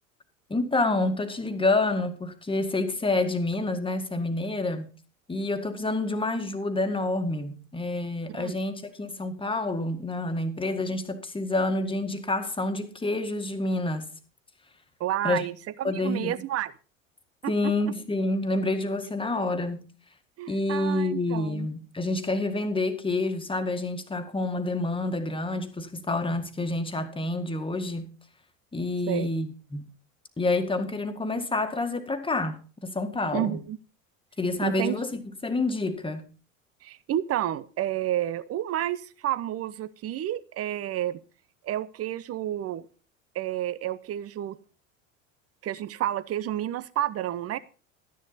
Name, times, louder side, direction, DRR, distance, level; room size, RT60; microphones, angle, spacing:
voice 1, 0.5-4.9 5.3-14.1 15.2-15.5 15.8-16.4 17.5-19.9 20.5-28.1 28.7-29.8 30.4-33.6 34.4-36.3, left 2 dB, 15° left, 1.9 m, -28 dB
voice 2, 15.0-16.7 17.4-17.7 20.4-21.7 29.1-29.3 33.3-33.8 34.6-35.0 36.8-41.2 41.6-42.9 43.3-44.6 45.6-47.6, right 12 dB, 35° right, 0.9 m, -30 dB
12.5 x 10.5 x 4.1 m
hypercardioid pair, 80°, 40 cm